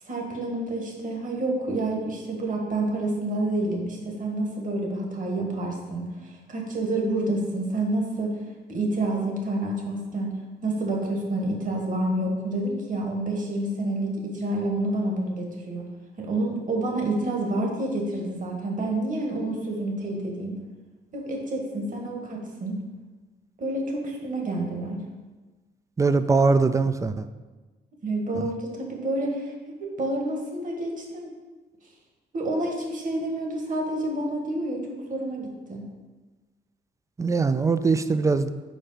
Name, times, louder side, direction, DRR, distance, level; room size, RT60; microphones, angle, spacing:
voice 1, 0.1-8.4 8.7-10.3 10.6-15.8 16.2-20.6 21.1-22.8 23.6-25.0 28.0-31.3 32.3-35.8, right 2 dB, 40° right, 0 dB, 1.6 m, -28 dB
voice 2, 26.0-27.3 28.4-28.5 37.2-38.5, right 4 dB, 15° right, 12 dB, 0.4 m, -22 dB
5.2 x 4.4 x 5.7 m, 1.3 s
cardioid pair, 90°, 20 cm